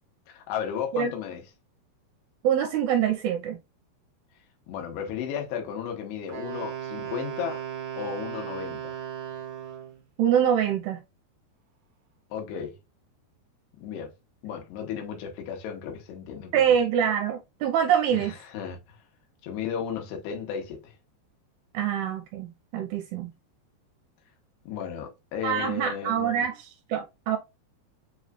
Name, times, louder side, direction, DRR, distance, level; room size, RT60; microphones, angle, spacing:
voice 1, 0.3-1.4 4.7-7.6 8.0-9.0 12.3-12.8 13.8-14.1 14.4-16.6 18.1-19.0 19.4-20.9 24.7-26.5, left 8 dB, 75° left, 3.4 m, -34 dB
voice 2, 2.4-3.6 10.2-11.0 16.5-18.3 21.7-23.3 25.4-27.4, right 9 dB, 80° right, 2.6 m, -25 dB
Wind instrument woodwind instrument, 6.3-10.0, right 9 dB, 60° right, 1.9 m, -36 dB
7.0 x 3.1 x 2.4 m
omnidirectional pair, 4.9 m